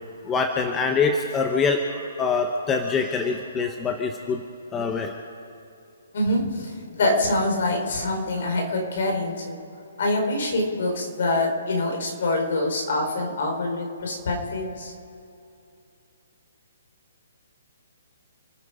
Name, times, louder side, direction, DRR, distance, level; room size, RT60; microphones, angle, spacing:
voice 1, 0.2-4.4 4.7-5.1, left 4 dB, 15° left, 4 dB, 1.0 m, -24 dB
voice 2, 6.1-9.6 10.0-14.9, left 2 dB, 60° left, 1 dB, 4.6 m, -25 dB
29.0 x 9.6 x 5.1 m, 2.7 s
hypercardioid pair, 155°, 0 cm